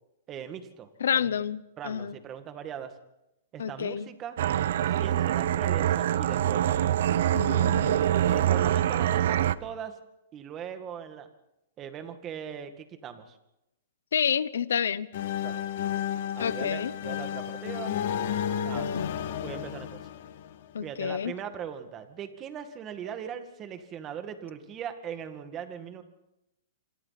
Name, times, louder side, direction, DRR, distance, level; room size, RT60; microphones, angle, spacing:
voice 1, 0.3-1.3 1.8-2.9 3.5-4.4 5.0-6.9 8.2-10.0 10.3-11.3 11.8-13.4 15.4-15.6 16.4-18.0 18.6-18.9 19.4-20.0 20.8-26.0, right 8 dB, 20° right, 8 dB, 2.0 m, -40 dB
voice 2, 1.0-2.2 3.6-4.1 7.3-8.0 14.1-15.1 16.4-16.9 18.8-19.1 20.7-21.3, left 8 dB, 85° left, 18 dB, 0.9 m, -29 dB
sound 1, 4.4-9.5, right 11 dB, 65° right, 0.8 m, -25 dB
sound 2, 15.1-20.9, left 9 dB, 55° left, 1.7 m, -32 dB
27.0 x 26.0 x 4.2 m, 0.90 s
hypercardioid pair, 155°, 0 cm